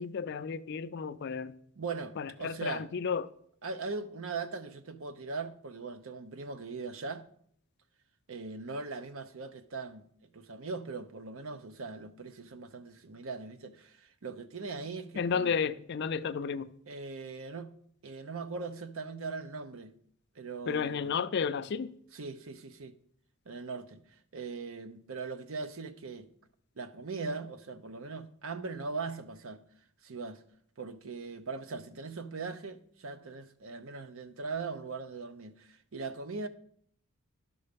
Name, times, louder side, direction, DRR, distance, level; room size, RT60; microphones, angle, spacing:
voice 1, 0.0-1.5 2.2-3.3 15.2-16.7 20.7-21.9, left 6 dB, 50° left, 0.4 m, -32 dB
voice 2, 1.8-2.9 3.6-7.2 8.3-10.0 10.3-15.5 16.9-17.7 18.0-19.9 20.4-21.1 22.1-22.9 23.5-24.0 24.3-26.3 26.8-29.6 30.0-30.4 30.8-36.5, right 4 dB, 70° right, 0.7 m, -40 dB
11.5 x 5.4 x 5.2 m
head